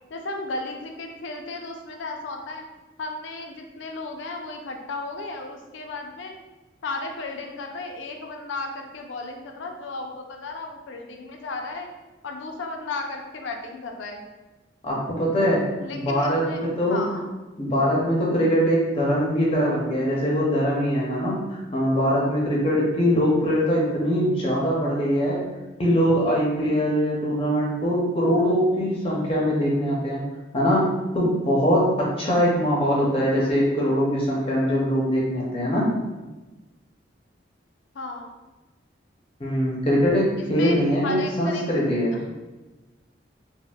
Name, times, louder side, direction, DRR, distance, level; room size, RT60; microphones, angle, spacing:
voice 1, 0.1-2.7 3.0-6.3 6.8-11.9 12.2-14.2 15.8-17.3 37.9-38.3 40.4-40.8 41.0-41.7 42.1-42.3, left 3 dB, 80° left, 3 dB, 0.4 m, -34 dB
voice 2, 14.8-15.6 15.9-17.1 17.6-25.4 25.8-30.2 30.5-30.9 31.1-35.9 39.4-42.2, equal, 30° left, -4 dB, 0.5 m, -22 dB
4.1 x 2.0 x 2.3 m, 1.2 s
head